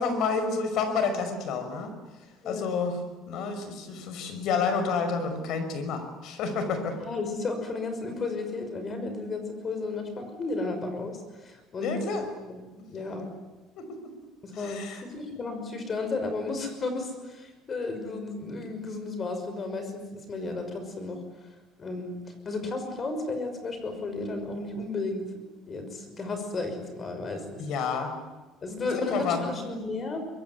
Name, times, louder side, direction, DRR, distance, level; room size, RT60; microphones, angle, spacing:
voice 1, 0.0-1.9 2.4-3.0 3.3-7.0 11.8-12.2 13.8-14.0 14.5-15.0 27.6-28.1 29.0-29.8, left 5 dB, 60° left, 8 dB, 5.6 m, -29 dB
voice 2, 6.7-12.0 12.5-13.3 14.4-21.2 21.8-22.2 22.4-25.2 25.7-27.6 28.6-30.2, left 3 dB, 25° left, 7 dB, 6.0 m, -33 dB
24.5 x 22.0 x 9.8 m, 1.2 s
cardioid pair, 155°, 0 cm